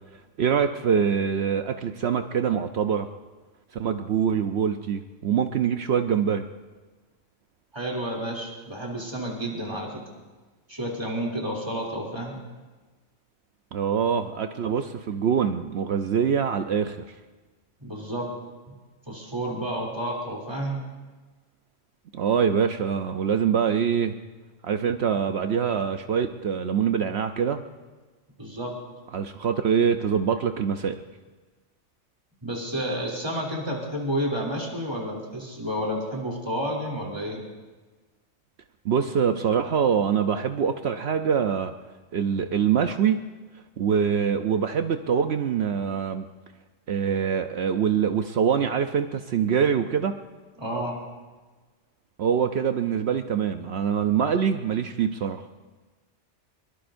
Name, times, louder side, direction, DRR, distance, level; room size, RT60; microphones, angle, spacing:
voice 1, 0.4-3.1 3.8-6.4 13.7-17.1 22.1-24.1 24.6-27.6 29.1-31.0 38.8-41.7 42.1-43.2 43.8-46.3 46.9-50.2 52.2-55.4, right 7 dB, 65° right, 7 dB, 0.9 m, -24 dB
voice 2, 7.7-10.0 10.7-12.4 17.8-18.3 18.7-18.8 19.1-20.8 28.4-28.7 32.4-37.4 50.6-51.0, equal, 20° right, -2 dB, 3.0 m, -30 dB
23.0 x 22.0 x 2.6 m, 1.3 s
omnidirectional pair, 1.2 m